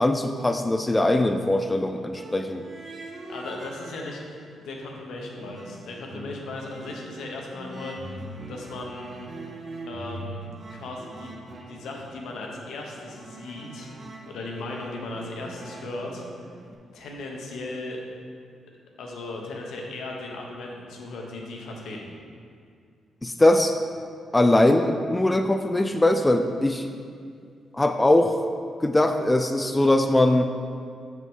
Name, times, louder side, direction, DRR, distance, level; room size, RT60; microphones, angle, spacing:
voice 1, 0.0-2.6 23.2-23.7 24.3-26.9 27.7-28.3 28.8-30.5, left 1 dB, 15° left, 6 dB, 0.3 m, -21 dB
sound 1, 2.2-4.4 4.8-16.8, right 2 dB, 40° right, 0.8 m, -42 dB
voice 2, 3.3-4.2 4.6-9.1 9.8-11.3 11.7-13.9 14.3-16.2 16.9-18.0 19.0-22.1, left 2 dB, 80° left, 0 dB, 0.9 m, -37 dB
6.0 x 5.7 x 3.6 m, 2.3 s
cardioid pair, 75°, 0 cm